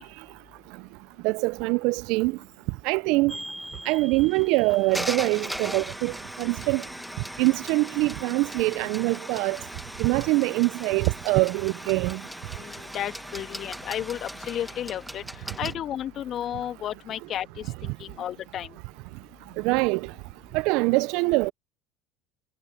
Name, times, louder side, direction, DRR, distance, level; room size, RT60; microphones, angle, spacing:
voice 1, 1.2-2.4 2.8-3.4 3.9-6.1 6.4-6.8 7.4-9.6 10.0-12.2 19.6-20.1 20.5-21.5, right 24 dB, 70° right, 0.6 m, -24 dB
sound 1, 3.3-15.7, equal, ahead, 1.3 m, -38 dB
voice 2, 12.6-15.2 15.6-18.8, left 11 dB, 50° left, 2.2 m, -33 dB
hypercardioid pair, 75°, 0 cm